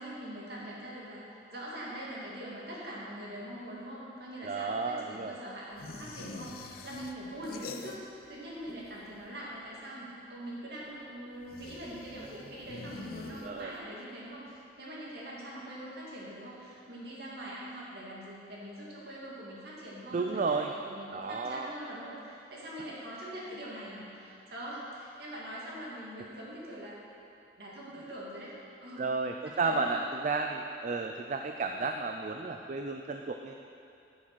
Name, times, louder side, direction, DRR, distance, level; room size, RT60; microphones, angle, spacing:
voice 1, 0.0-27.0 27.6-28.6 28.8-29.1 29.4-30.1, equal, 60° right, -6 dB, 2.4 m, -43 dB
voice 2, 4.4-5.4 13.4-13.7 20.1-20.7 21.1-21.7 29.0-33.5, right 4 dB, 45° right, 4 dB, 0.4 m, -32 dB
sound 1, 5.8-8.3 8.6-9.4 11.4-13.9, left 3 dB, 55° left, 0.5 m, -46 dB
9.9 x 6.5 x 6.2 m, 2.7 s
head